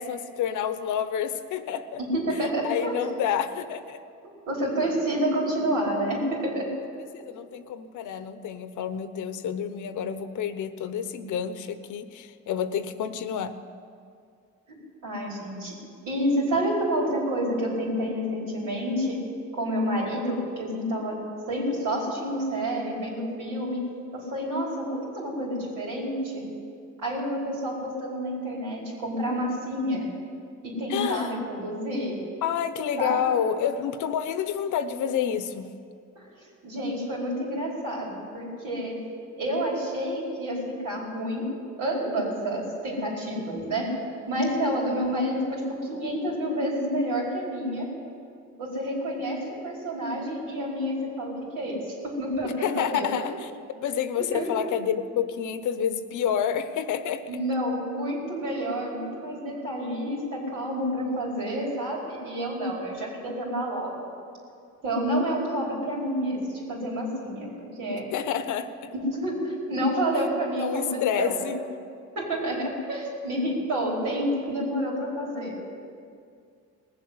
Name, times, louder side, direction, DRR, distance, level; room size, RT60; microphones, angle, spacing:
voice 1, 0.0-2.0 2.4-4.0 7.1-13.6 30.9-31.3 32.4-35.7 52.4-53.5 53.7-57.2 68.1-68.9 70.6-71.5, left 8 dB, 80° left, 11 dB, 0.9 m, -29 dB
voice 2, 2.1-3.1 4.5-6.7 14.7-15.7 16.0-19.2 19.5-21.1 21.5-23.8 24.1-26.4 27.0-30.1 30.6-32.2 33.0-33.4 36.1-36.2 36.6-38.9 39.4-41.5 41.8-43.9 44.3-47.9 48.6-53.1 54.3-54.5 57.3-63.9 64.8-67.5 67.8-68.1 68.9-71.5 72.1-75.6, equal, 85° right, -4 dB, 4.9 m, -29 dB
19.0 x 7.7 x 7.9 m, 2.3 s
cardioid pair, 90°, 30 cm